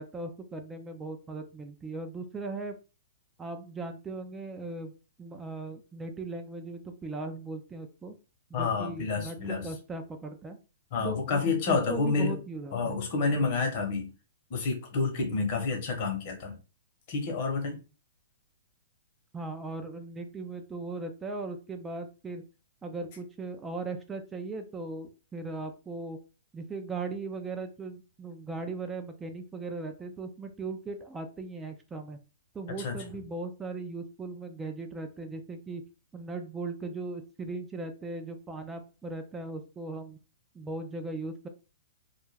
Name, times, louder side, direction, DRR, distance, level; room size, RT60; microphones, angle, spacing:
voice 1, 0.0-2.7 3.4-4.9 5.2-8.1 8.5-10.6 11.0-11.4 11.7-13.0 19.3-22.4 22.8-26.2 26.5-32.2 32.5-35.8 36.1-40.2 40.5-41.5, right 3 dB, 15° right, 5 dB, 0.3 m, -38 dB
voice 2, 8.5-9.7 10.9-12.4 12.7-14.1 14.5-16.6 17.1-17.8 32.8-33.2, left 4 dB, 50° left, 4 dB, 0.9 m, -29 dB
2.3 x 2.1 x 3.2 m, 0.33 s
hypercardioid pair, 135°, 0 cm